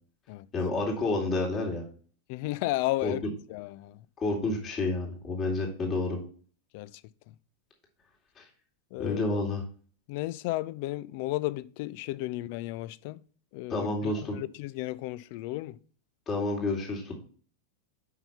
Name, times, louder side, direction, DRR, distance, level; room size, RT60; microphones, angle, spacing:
voice 1, 0.5-1.8 3.0-3.1 4.2-6.2 8.4-8.5 9.0-9.6 13.7-14.4 16.3-17.2, left 2 dB, 25° left, 2.3 m, -29 dB
voice 2, 2.3-3.2 3.5-4.0 6.7-6.9 8.9-9.4 10.1-13.2 13.5-15.8, left 18 dB, 45° left, 0.4 m, -33 dB
5.7 x 5.6 x 5.6 m
figure-of-eight pair, 90°, 0 cm